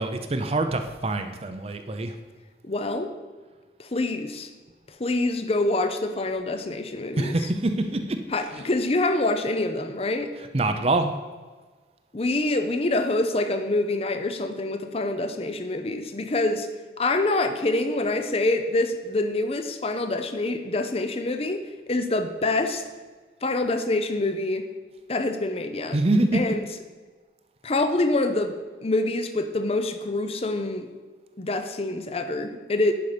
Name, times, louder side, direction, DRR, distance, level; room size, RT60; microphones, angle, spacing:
voice 1, 0.0-2.1 7.2-8.2 10.5-11.1 25.9-26.5, right 2 dB, 35° right, 7 dB, 0.6 m, -25 dB
voice 2, 2.6-3.1 3.8-4.5 5.0-7.3 8.3-10.3 12.1-16.7 17.0-22.8 23.4-24.7 25.1-26.0 26.3-26.7 27.6-28.5 28.8-30.9 31.4-32.9, left 2 dB, 35° left, 8 dB, 0.6 m, -26 dB
10.5 x 5.6 x 5.0 m, 1.4 s
head